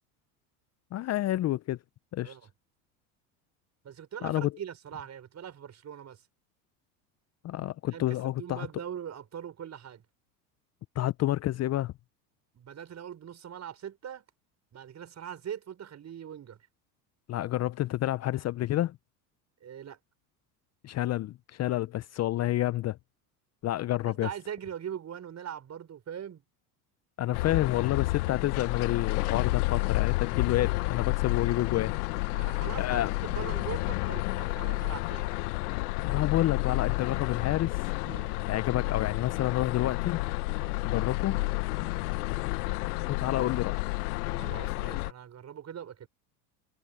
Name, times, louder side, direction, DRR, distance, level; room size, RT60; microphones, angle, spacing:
voice 1, 0.9-1.8 2.1-2.4 4.2-4.5 7.4-8.7 11.0-11.9 17.3-19.0 20.8-23.0 23.6-24.3 27.2-31.9 32.8-33.1 36.0-37.9 38.5-40.2 40.8-41.4 43.1-43.7 44.3-44.4, left 14 dB, 35° left, 0.6 m, -29 dB
voice 2, 3.8-6.2 7.9-10.0 12.5-14.3 14.7-16.6 19.6-20.0 24.0-26.4 32.3-35.4 38.0-38.3 40.5-40.8 41.8-42.0 44.4-46.1, right 9 dB, 35° right, 5.1 m, -41 dB
sound 1, 27.3-45.1, left 23 dB, 75° left, 1.1 m, -30 dB
hypercardioid pair, 90°, 45 cm